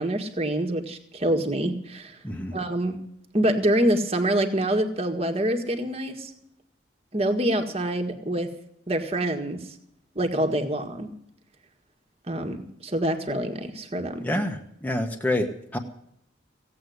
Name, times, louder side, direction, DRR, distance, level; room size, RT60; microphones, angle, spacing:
voice 1, 0.0-2.2 2.5-3.0 3.3-6.3 7.1-8.5 8.9-9.6 10.2-11.1 12.3-14.3, right 1 dB, 30° right, 5 dB, 1.8 m, -26 dB
voice 2, 2.2-2.6 14.2-15.5 15.7-15.8, left 1 dB, 10° left, 3 dB, 1.3 m, -27 dB
17.0 x 8.5 x 9.5 m, 0.73 s
head